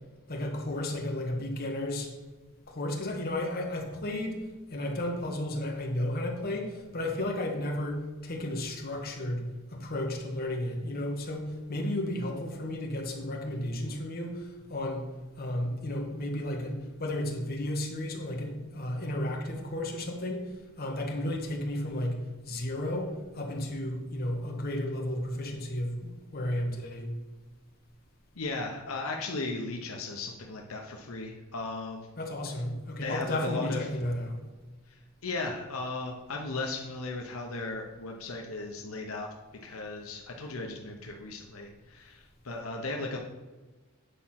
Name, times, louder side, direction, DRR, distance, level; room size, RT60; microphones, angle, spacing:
voice 1, 0.3-2.1 2.7-4.4 4.7-9.4 9.7-15.1 15.4-27.1 32.2-34.4, left 1 dB, 45° left, 1 dB, 1.3 m, -33 dB
voice 2, 28.3-32.1 33.0-33.8 35.2-39.3 39.6-43.2, left 3 dB, 80° left, 1 dB, 0.9 m, -36 dB
8.4 x 4.2 x 5.9 m, 1.2 s
head